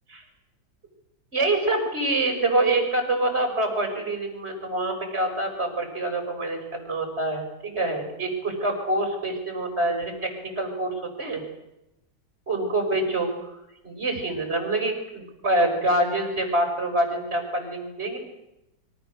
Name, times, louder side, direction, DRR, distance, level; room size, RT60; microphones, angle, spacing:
voice 1, 1.3-11.4 12.5-13.3 13.8-18.2, right 2 dB, 30° right, 4 dB, 6.2 m, -26 dB
27.5 x 24.5 x 6.5 m, 0.90 s
omnidirectional pair, 2.2 m